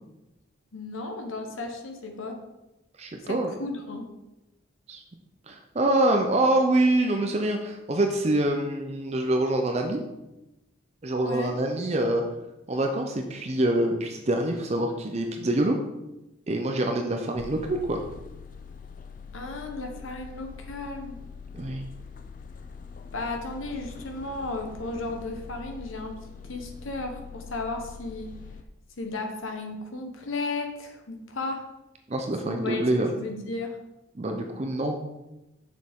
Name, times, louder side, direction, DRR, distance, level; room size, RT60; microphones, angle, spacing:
voice 1, 0.7-2.4 3.2-4.1 11.2-11.5 19.3-21.2 23.1-26.1 26.5-28.3 29.0-31.6 32.4-33.8, left 2 dB, 85° left, 3 dB, 1.1 m, -34 dB
voice 2, 3.0-3.5 4.9-5.0 5.5-10.0 11.0-12.2 12.7-15.8 16.5-18.0 21.5-21.8 32.1-33.1 34.2-35.0, right 1 dB, 30° right, 4 dB, 0.5 m, -25 dB
sound 1, 17.4-28.6, left 5 dB, 40° left, 0.4 m, -43 dB
6.4 x 6.3 x 3.6 m, 0.96 s
head